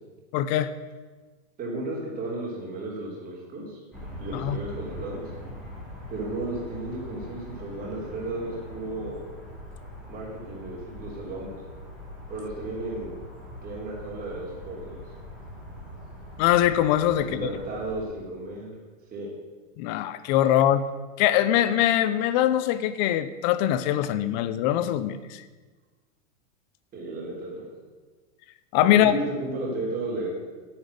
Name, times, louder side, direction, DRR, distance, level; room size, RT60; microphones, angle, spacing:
voice 1, 0.3-0.7 4.3-4.6 16.4-17.5 19.8-20.9 21.2-25.4 28.7-29.2, left 12 dB, 35° left, 14 dB, 0.6 m, -22 dB
voice 2, 1.6-3.8 4.2-5.2 6.1-9.2 10.1-11.6 12.3-13.1 13.6-15.0 17.1-18.7 19.1-19.3 26.9-27.7 28.8-30.3, right 2 dB, 20° right, -3 dB, 3.5 m, -34 dB
sound 1, 3.9-18.0, equal, ahead, 3.2 m, -42 dB
10.0 x 8.9 x 8.0 m, 1.3 s
supercardioid pair, 155°, 39 cm